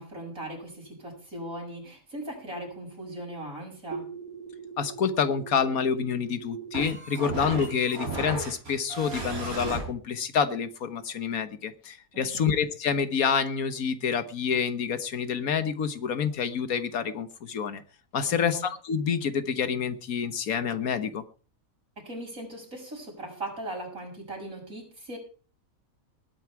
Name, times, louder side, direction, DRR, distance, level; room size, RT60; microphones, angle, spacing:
voice 1, 0.0-4.1 12.1-12.5 18.2-18.6 22.0-25.2, right 1 dB, 70° right, 0 dB, 7.1 m, -39 dB
sound 1, 3.9-9.8, right 3 dB, 90° right, 5.2 m, -36 dB
voice 2, 4.8-17.8 18.1-21.2, left 6 dB, 90° left, 11 dB, 1.6 m, -28 dB
19.5 x 9.5 x 4.7 m, 0.37 s
omnidirectional pair, 1.5 m